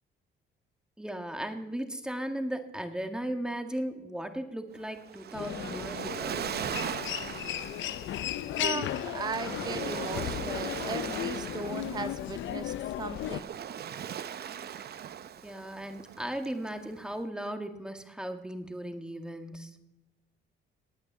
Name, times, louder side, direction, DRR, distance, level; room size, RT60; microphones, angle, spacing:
voice 1, 1.0-6.5 15.4-19.8, right 1 dB, 5° right, 1.9 m, -36 dB
Waves surf, 4.8-17.2, right 9 dB, 55° right, 0.7 m, -39 dB
Human voice, 5.3-13.4, left 12 dB, 70° left, 0.6 m, -35 dB
voice 2, 8.4-13.6, right 6 dB, 20° right, 0.4 m, -38 dB
19.0 x 9.5 x 7.4 m
cardioid pair, 90°, 20 cm